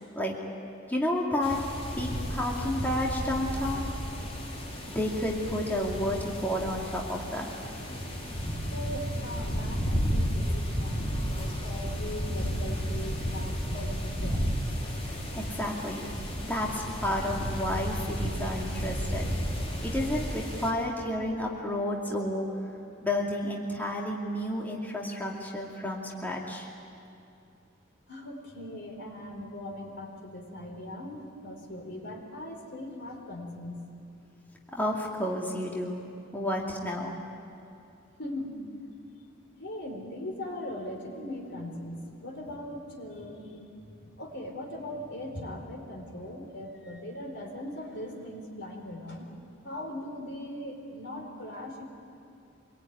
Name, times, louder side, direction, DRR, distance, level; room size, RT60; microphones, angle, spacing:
voice 1, 0.9-1.6 2.0-3.9 4.9-7.5 15.4-16.1 16.4-19.3 19.8-22.5 23.0-26.7 34.7-36.0 36.3-37.1, left 1 dB, 10° left, -2 dB, 2.6 m, -31 dB
sound 1, 1.4-20.7, equal, 35° left, 4.3 m, -33 dB
voice 2, 8.7-14.5 28.1-33.8 38.2-38.6 39.6-49.4 49.6-51.8, left 1 dB, 65° left, 3 dB, 4.3 m, -40 dB
26.0 x 22.0 x 9.6 m, 2.6 s
head